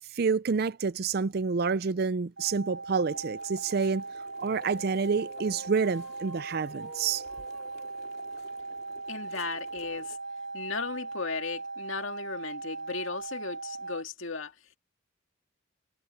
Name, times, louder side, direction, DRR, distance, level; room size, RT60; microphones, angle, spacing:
voice 1, 0.1-4.0 4.4-7.2, right 5 dB, 50° right, 0.5 m, -28 dB
sound 1, 2.4-14.0, right 3 dB, 85° right, 5.0 m, -39 dB
sound 2, 3.1-10.2, left 3 dB, 50° left, 2.9 m, -53 dB
sound 3, 4.4-9.1, equal, ahead, 1.9 m, -56 dB
voice 2, 9.1-10.2 10.5-14.5, left 4 dB, 75° left, 2.0 m, -36 dB
head